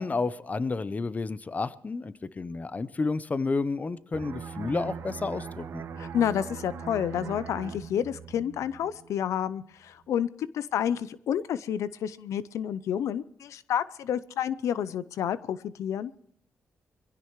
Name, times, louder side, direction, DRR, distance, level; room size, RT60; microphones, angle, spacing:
voice 1, 0.0-5.8, left 3 dB, 30° left, 16 dB, 0.8 m, -31 dB
sound 1, 4.1-9.5 9.8-10.1, right 6 dB, 70° right, 1.9 m, -40 dB
voice 2, 6.0-16.1, left 9 dB, 85° left, 16 dB, 0.6 m, -30 dB
22.5 x 16.0 x 3.2 m, 0.67 s
cardioid pair, 85°, 5 cm